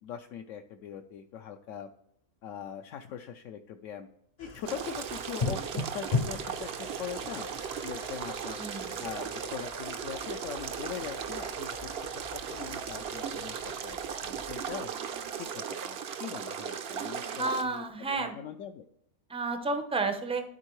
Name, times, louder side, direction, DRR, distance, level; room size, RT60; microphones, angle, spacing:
voice 1, 0.0-1.9 2.4-4.1 4.4-7.5 7.8-14.0 14.2-14.9 15.3-18.8, left 8 dB, 70° left, 4 dB, 0.9 m, -42 dB
sound 1, 4.4-15.5, left 3 dB, 45° left, 0.5 m, -40 dB
Liquid, 4.5-5.9 6.7-7.8 8.6-9.5 10.5-11.6 12.3-13.5 14.5-15.6 16.9-17.9, right 6 dB, 75° right, 1.2 m, -52 dB
sound 2, 4.7-17.6, right 7 dB, 60° right, 0.7 m, -37 dB
voice 2, 8.5-9.0 17.4-18.4 19.3-20.4, right 3 dB, 10° right, 6 dB, 0.4 m, -31 dB
12.5 x 4.5 x 3.1 m, 0.73 s
omnidirectional pair, 1.5 m